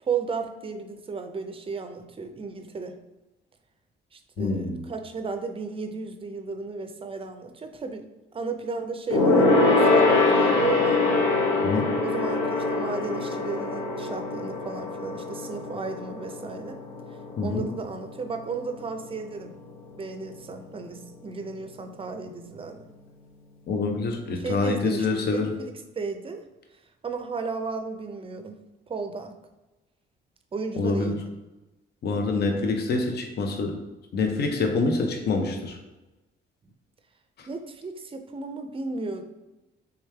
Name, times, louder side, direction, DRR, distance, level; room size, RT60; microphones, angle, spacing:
voice 1, 0.0-3.0 4.1-8.1 8.3-11.0 12.0-16.8 17.4-19.5 20.0-22.9 24.4-26.4 27.0-28.5 28.9-29.3 30.5-31.3 34.7-34.9 37.5-39.2, right 4 dB, 30° right, 7 dB, 0.5 m, -34 dB
voice 2, 4.4-4.8 11.6-11.9 17.4-17.6 23.7-25.5 30.8-31.1 32.0-33.8 34.1-35.8 37.4-37.5, left 3 dB, 55° left, 4 dB, 0.7 m, -26 dB
Gong, 9.1-18.9 19.2-19.4 19.7-19.8, left 3 dB, 90° left, 0.9 m, -24 dB
3.5 x 3.2 x 3.3 m, 1.0 s
cardioid pair, 90°, 20 cm